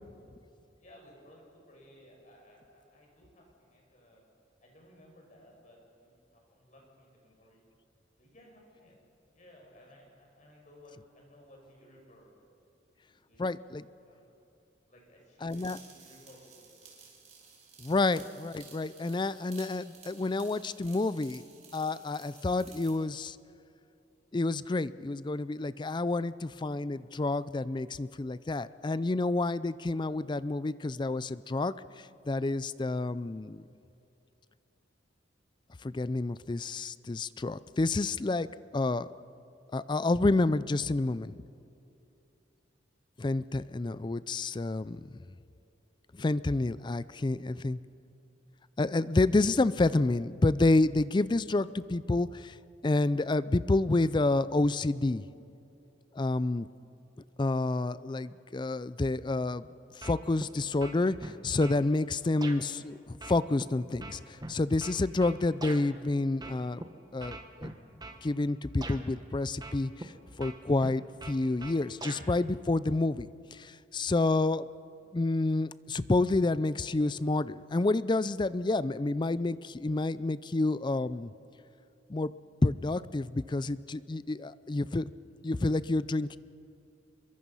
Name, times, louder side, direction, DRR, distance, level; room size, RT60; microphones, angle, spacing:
voice 1, 0.8-4.3 4.6-7.6 8.2-9.0 9.3-12.3 12.8-13.5 14.0-14.3 14.9-16.9, left 1 dB, 40° left, -1 dB, 5.8 m, -58 dB
voice 2, 13.4-13.8 15.4-15.8 17.8-21.4 21.7-23.4 24.3-31.7 32.3-33.6 35.8-38.5 38.7-39.1 39.7-41.3 43.2-45.2 46.1-47.8 48.8-52.5 52.8-55.2 56.2-56.7 57.4-59.7 59.9-66.8 67.1-67.7 68.2-70.1 70.4-74.6 75.1-81.3 82.1-82.3 82.6-85.1 85.4-86.4, left 2 dB, 25° left, 17 dB, 0.4 m, -29 dB
sound 1, 15.5-23.0, right 6 dB, 40° right, 4.2 m, -54 dB
sound 2, 60.0-60.5 60.8-61.8 62.4-62.6 63.2-65.8 66.4-66.8 67.2-68.2 68.8-69.0 69.6-70.1 70.4-72.2, right 2 dB, 20° right, 1.3 m, -43 dB
26.0 x 23.0 x 5.6 m, 2.7 s
head